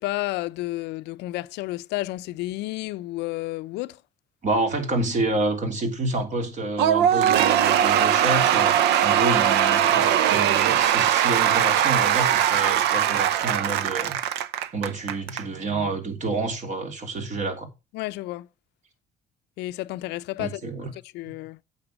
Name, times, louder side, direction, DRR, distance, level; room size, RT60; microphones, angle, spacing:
voice 1, 0.0-4.0 17.9-18.5 19.6-20.7 21.1-21.6, left 18 dB, 85° left, 0.5 m, -31 dB
voice 2, 4.4-14.2 14.7-17.7 20.4-20.9, right 2 dB, 45° right, 3.0 m, -28 dB
Cheering / Applause / Crowd, 6.8-15.4, right 10 dB, 85° right, 0.8 m, -20 dB
8.9 x 7.1 x 5.2 m
cardioid pair, 110°, 17 cm